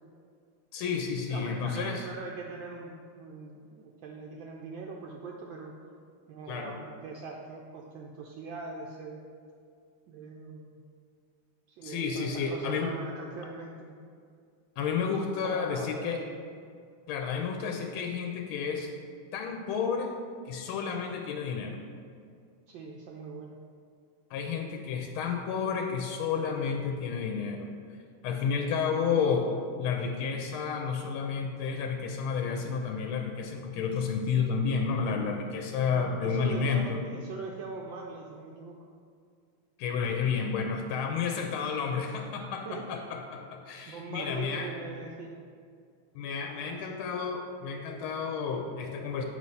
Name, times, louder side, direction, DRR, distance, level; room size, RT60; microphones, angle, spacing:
voice 1, 0.7-2.1 6.5-6.8 11.8-12.9 14.8-16.2 17.1-18.9 19.3-20.1 20.5-21.8 24.3-27.7 28.2-29.5 29.8-37.0 39.8-44.7 46.1-49.2, left 6 dB, 80° left, 2 dB, 1.4 m, -31 dB
voice 2, 1.3-5.7 6.3-9.2 10.1-10.8 11.7-14.0 15.4-16.3 22.7-23.6 35.9-38.8 42.6-42.9 43.9-45.4 46.5-46.8, right 4 dB, 75° right, -1 dB, 1.2 m, -41 dB
7.7 x 3.1 x 5.4 m, 2.2 s
omnidirectional pair, 2.4 m